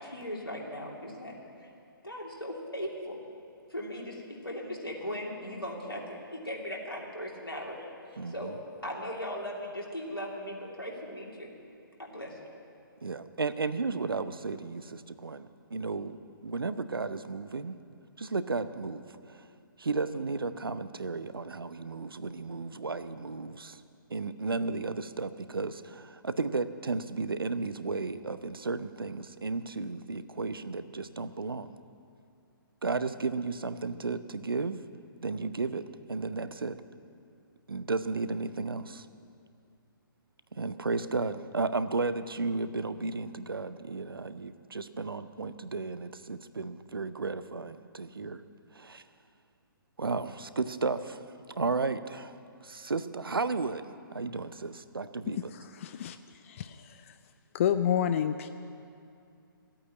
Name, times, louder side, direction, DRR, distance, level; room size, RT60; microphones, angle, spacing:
voice 1, 0.0-1.7 2.0-3.2 3.7-7.8 8.3-8.5 8.8-11.5 12.0-12.4, equal, 85° left, -2 dB, 2.9 m, -38 dB
voice 2, 8.2-8.5 13.0-16.2 16.4-17.8 18.2-19.5 19.8-23.8 24.1-31.8 32.8-34.8 35.2-36.8 37.7-39.1 40.5-48.4 48.7-49.0 50.0-51.2 51.6-52.3 52.6-53.8 54.1-55.4, right 3 dB, 75° right, 12 dB, 0.7 m, -33 dB
voice 3, 55.5-57.1 57.5-58.5, left 9 dB, 35° left, 11 dB, 0.4 m, -30 dB
14.0 x 8.7 x 9.8 m, 2.5 s
figure-of-eight pair, 130°, 12 cm